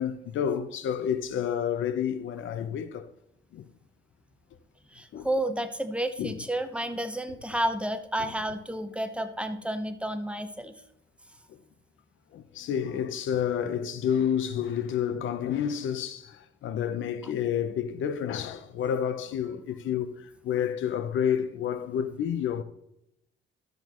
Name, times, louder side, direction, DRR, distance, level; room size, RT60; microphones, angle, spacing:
voice 1, 0.0-3.1 3.5-3.6 5.1-5.3 6.2-6.4 11.5-11.6 12.3-22.6, left 8 dB, 75° left, 0.9 m, -29 dB
voice 2, 4.9-10.7, right 1 dB, 5° right, 1.0 m, -31 dB
12.5 x 7.9 x 3.1 m
cardioid pair, 90°, 20 cm